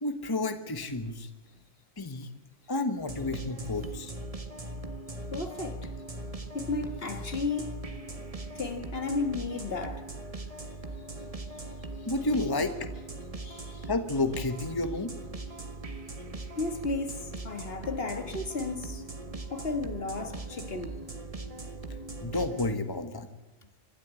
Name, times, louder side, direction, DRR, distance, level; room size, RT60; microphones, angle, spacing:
voice 1, 0.0-1.3 2.0-2.3 2.7-4.1 12.1-12.9 13.9-15.1 22.2-23.3, left 2 dB, 20° left, 1.3 m, -30 dB
sound 1, 3.0-22.8, right 2 dB, 30° right, 1.6 m, -40 dB
voice 2, 5.3-5.9 6.5-7.8 8.6-10.1 13.4-13.9 16.6-19.0 19.5-21.0, left 3 dB, 55° left, 1.9 m, -34 dB
25.5 x 12.0 x 8.3 m
omnidirectional pair, 1.2 m